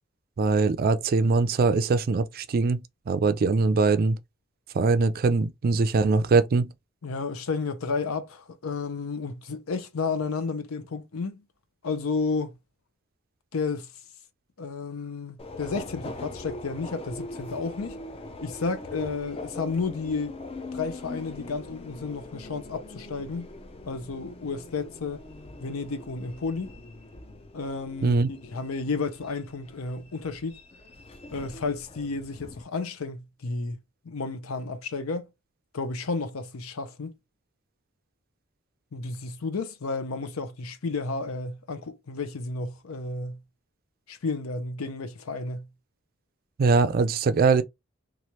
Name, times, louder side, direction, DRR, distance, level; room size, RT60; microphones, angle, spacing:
voice 1, 0.4-2.8 3.1-4.2 4.7-6.7 28.0-28.3 46.6-47.6, right 4 dB, 45° right, 0.4 m, -22 dB
voice 2, 7.0-11.4 11.8-12.6 13.5-13.9 14.6-18.0 18.4-20.3 20.7-23.5 23.9-25.2 25.6-26.7 27.5-30.6 31.3-33.8 34.0-35.3 35.7-37.1 38.9-43.4 44.1-45.7, left 4 dB, 85° left, 0.6 m, -32 dB
Subway metro underground, 15.4-32.6, left 2 dB, 30° left, 0.4 m, -42 dB
3.1 x 2.4 x 2.8 m
head